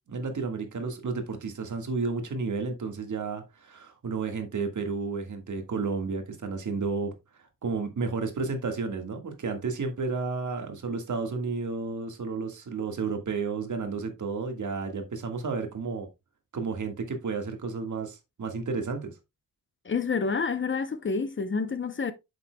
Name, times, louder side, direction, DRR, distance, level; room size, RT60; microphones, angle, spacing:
voice 1, 0.1-7.1 7.6-16.1 16.5-19.2, right 4 dB, 60° right, 1.7 m, -32 dB
voice 2, 19.8-22.1, left 5 dB, 35° left, 0.7 m, -28 dB
8.5 x 7.0 x 2.2 m
wide cardioid pair, 140°, 33 cm